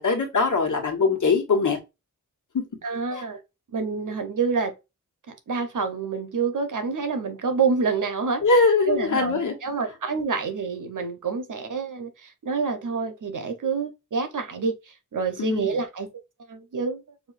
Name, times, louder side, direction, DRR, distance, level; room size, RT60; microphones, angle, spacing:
voice 1, 0.0-1.8 3.1-3.2 8.4-9.5 15.4-15.8, left 4 dB, 80° left, 1.5 m, -22 dB
voice 2, 2.8-3.4 3.7-4.7 5.5-8.4 8.9-14.7 15.1-16.1 16.5-17.0, right 5 dB, 85° right, 1.0 m, -27 dB
6.2 x 2.7 x 2.6 m
wide cardioid pair, 110°, 30 cm